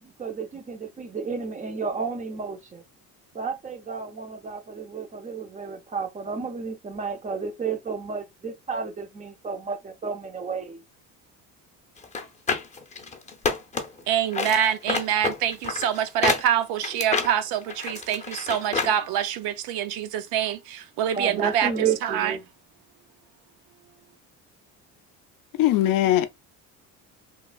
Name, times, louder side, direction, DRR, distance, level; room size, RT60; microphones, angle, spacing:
voice 1, 0.0-2.8 3.3-10.8 21.1-22.5, right 5 dB, 20° right, 0.6 m, -32 dB
sound 1, 12.0-14.0 14.3-18.9 19.3-19.4, left 4 dB, 20° left, 0.7 m, -28 dB
voice 2, 14.1-21.7 22.0-22.3, right 9 dB, 85° right, 0.6 m, -25 dB
voice 3, 25.6-26.3, left 13 dB, 65° left, 0.5 m, -20 dB
3.1 x 2.3 x 2.3 m
cardioid pair, 110°, 36 cm